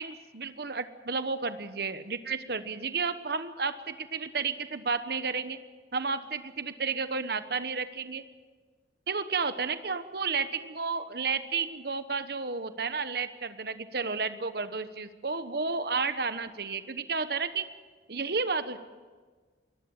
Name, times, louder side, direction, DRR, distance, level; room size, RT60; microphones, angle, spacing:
voice 1, 0.0-5.6 5.9-8.2 9.1-17.6 18.1-18.8, right 4 dB, 60° right, 11 dB, 1.1 m, -32 dB
22.0 x 19.0 x 7.2 m, 1.4 s
head